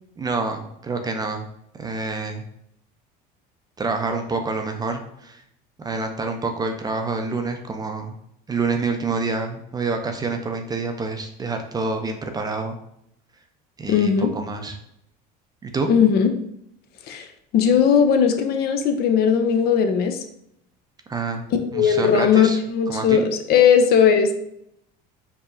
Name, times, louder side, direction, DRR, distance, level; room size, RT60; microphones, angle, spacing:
voice 1, 0.2-1.5 1.8-2.4 3.8-5.4 5.8-8.2 8.5-12.8 13.8-14.7 15.6-15.9 21.1-21.4 21.7-22.6 22.9-23.2, right 3 dB, 20° right, 5 dB, 0.4 m, -27 dB
voice 2, 13.9-14.3 15.9-16.3 17.1-17.3 17.5-20.2 21.7-24.3, left 7 dB, 50° left, 7 dB, 0.5 m, -18 dB
4.6 x 2.7 x 2.6 m, 0.75 s
supercardioid pair, 110°, 20 cm